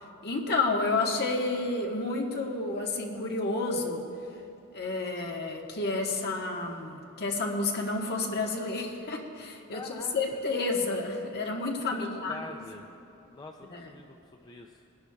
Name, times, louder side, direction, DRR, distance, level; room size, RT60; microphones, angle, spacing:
voice 1, 0.2-4.0 4.7-12.4 13.7-13.9, left 3 dB, 50° left, 0 dB, 1.3 m, -30 dB
voice 2, 9.7-10.4 12.0-12.9 13.3-14.9, left 3 dB, 20° left, 2 dB, 0.5 m, -44 dB
20.0 x 11.5 x 2.4 m, 2.9 s
head